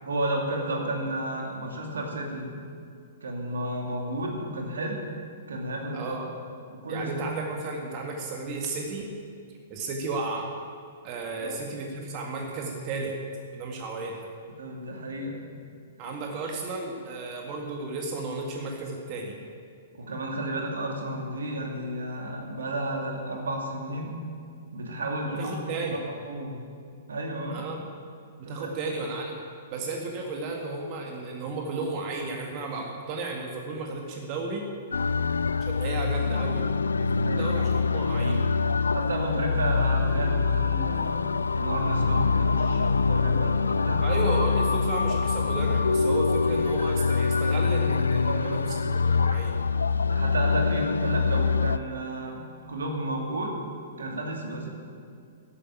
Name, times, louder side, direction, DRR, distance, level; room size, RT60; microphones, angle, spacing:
voice 1, 0.0-2.5 3.2-5.0 5.5-6.2 6.7-7.1 11.4-11.6 14.6-15.4 19.9-24.1 24.7-25.6 25.9-26.7 27.1-27.7 28.4-28.7 37.2-37.4 38.9-44.0 48.3-48.6 50.1-53.5 54.0-54.7, right 1 dB, 70° right, 1 dB, 2.6 m, -32 dB
voice 2, 5.9-6.3 6.9-9.1 9.7-10.5 11.0-13.1 13.5-14.2 16.0-19.4 25.4-26.0 27.5-27.8 28.4-29.4 29.7-34.6 35.6-36.7 37.0-38.4 44.0-49.5, right 3 dB, 35° right, 1 dB, 2.0 m, -33 dB
sound 1, 34.9-51.8, left 4 dB, 75° left, 0.4 m, -24 dB
14.0 x 8.9 x 9.0 m, 2.3 s
figure-of-eight pair, 110°, 0 cm